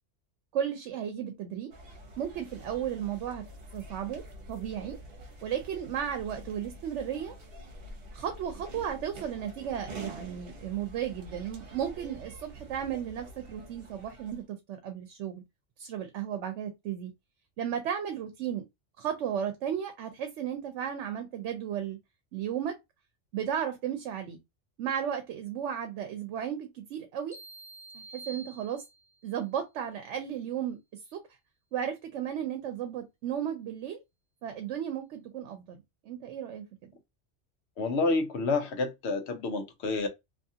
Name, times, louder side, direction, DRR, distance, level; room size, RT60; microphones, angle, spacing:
voice 1, 0.5-1.7 2.2-3.4 3.7-5.0 5.4-7.3 8.1-15.4 15.8-17.1 17.6-18.6 19.0-22.0 22.3-22.7 23.3-24.4 24.8-27.4 27.9-28.8 29.2-30.8 31.1-31.2 31.7-34.0 34.4-36.9, right 9 dB, 90° right, 0.9 m, -34 dB
sound 1, 1.7-14.4, right 1 dB, 60° right, 1.0 m, -47 dB
sound 2, 27.3-29.3, right 2 dB, 5° right, 0.6 m, -47 dB
voice 2, 37.8-40.1, left 3 dB, 75° left, 0.9 m, -29 dB
2.7 x 2.4 x 2.7 m
omnidirectional pair, 1.2 m